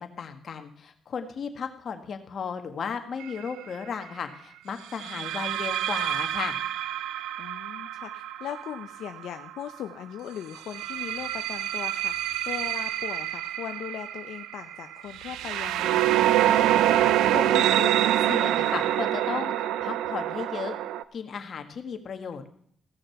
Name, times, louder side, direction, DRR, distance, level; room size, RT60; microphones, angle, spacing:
voice 1, 0.0-6.6 17.3-19.5 19.8-20.8 21.1-22.5, left 6 dB, 55° left, 7 dB, 1.6 m, -35 dB
sound 1, 3.2-3.5 5.0-9.7 10.5-21.0, right 12 dB, 90° right, 0.5 m, -26 dB
voice 2, 7.4-16.2, left 10 dB, 80° left, 7 dB, 0.6 m, -39 dB
16.5 x 6.5 x 5.9 m, 0.65 s
cardioid pair, 90°, 0 cm